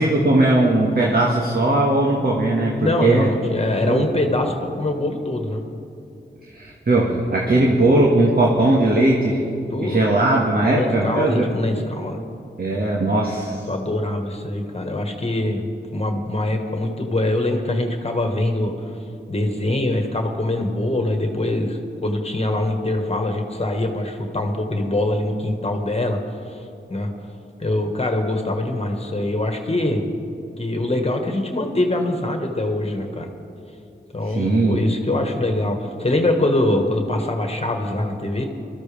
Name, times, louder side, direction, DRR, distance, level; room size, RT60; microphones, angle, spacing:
voice 1, 0.0-3.3 3.8-4.1 6.5-9.4 9.8-11.4 12.6-13.7 34.2-34.8, right 2 dB, 55° right, -2 dB, 1.7 m, -19 dB
voice 2, 2.8-5.6 9.7-10.1 10.6-12.2 13.7-18.7 19.3-26.2 26.5-26.6 26.9-27.1 27.6-30.0 30.6-33.3 34.1-38.5, left 1 dB, 35° left, 3 dB, 1.6 m, -23 dB
20.5 x 13.5 x 3.4 m, 2.7 s
cardioid pair, 60°, 19 cm